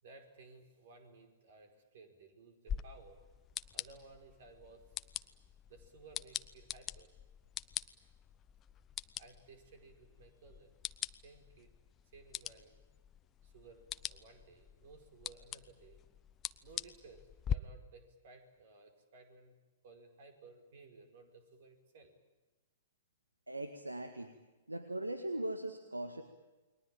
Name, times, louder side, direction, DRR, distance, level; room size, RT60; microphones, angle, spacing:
voice 1, 0.0-3.2 3.7-4.9 5.7-7.1 9.2-10.7 11.2-11.7 12.1-12.8 13.4-16.0 16.6-19.6 19.8-22.1, right 3 dB, 55° right, 7 dB, 5.2 m, -58 dB
sound 1, 2.7-17.6, left 9 dB, 25° left, 0.8 m, -44 dB
voice 2, 23.5-24.3 24.7-26.2, right 1 dB, 90° right, 8 dB, 1.9 m, -40 dB
29.5 x 21.5 x 9.0 m, 1.2 s
figure-of-eight pair, 110°, 0 cm